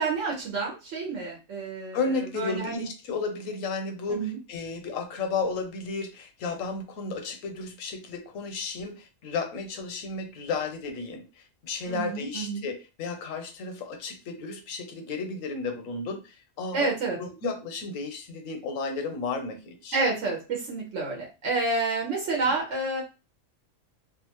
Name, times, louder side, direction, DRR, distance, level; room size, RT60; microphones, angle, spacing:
voice 1, 0.0-2.0 2.3-2.9 4.1-4.4 11.9-12.7 16.7-17.2 19.9-23.0, right 3 dB, 70° right, -1 dB, 1.1 m, -29 dB
voice 2, 1.9-16.9 17.2-20.0, left 4 dB, 85° left, 6 dB, 1.1 m, -33 dB
2.6 x 2.4 x 2.9 m, 0.29 s
omnidirectional pair, 1.3 m